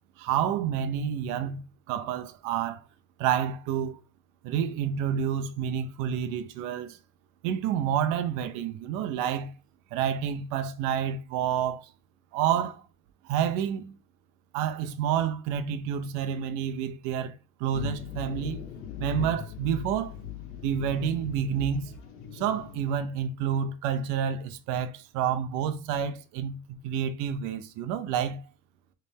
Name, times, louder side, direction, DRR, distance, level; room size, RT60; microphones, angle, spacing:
voice 1, 0.2-2.8 3.2-4.0 4.4-7.0 7.4-9.5 9.9-11.9 12.3-12.8 13.2-13.9 14.5-17.3 17.6-18.6 19.0-20.2 20.6-21.9 22.3-28.4, right 8 dB, 50° right, 0.7 m, -29 dB
sound 1, 17.7-23.0, left 7 dB, 65° left, 1.5 m, -39 dB
4.0 x 3.3 x 3.4 m
supercardioid pair, 140°, 38 cm